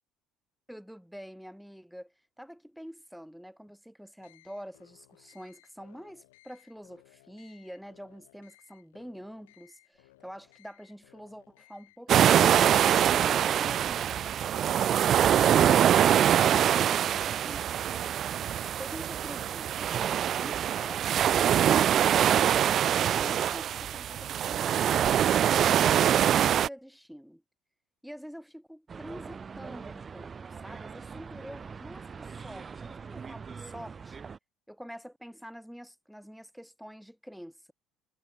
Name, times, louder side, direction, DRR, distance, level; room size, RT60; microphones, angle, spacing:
voice 1, 0.7-12.6 18.8-22.3 23.0-27.4 28.0-34.2 34.7-37.7, equal, ahead, 1.5 m, -46 dB
sound 1, 4.2-15.1, left 20 dB, 85° left, 2.7 m, -61 dB
sound 2, 12.1-26.7, right 10 dB, 55° right, 0.3 m, -24 dB
sound 3, 28.9-34.4, right 5 dB, 35° right, 3.0 m, -43 dB
hypercardioid pair, 75°, 0 cm